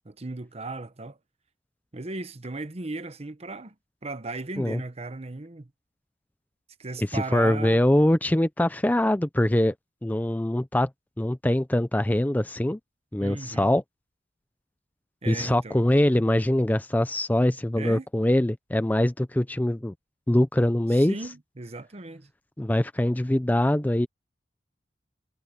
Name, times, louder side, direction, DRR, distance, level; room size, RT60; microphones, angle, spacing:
voice 1, 0.0-1.2 1.9-3.7 4.0-5.7 6.8-7.8 13.2-13.7 15.2-15.8 17.8-18.1 20.9-22.3, right 2 dB, 35° right, 0.9 m, -36 dB
voice 2, 7.0-9.7 10.0-10.9 11.2-12.8 13.1-13.8 15.3-19.9 20.3-21.2 22.6-24.1, left 1 dB, 10° left, 0.5 m, -23 dB
head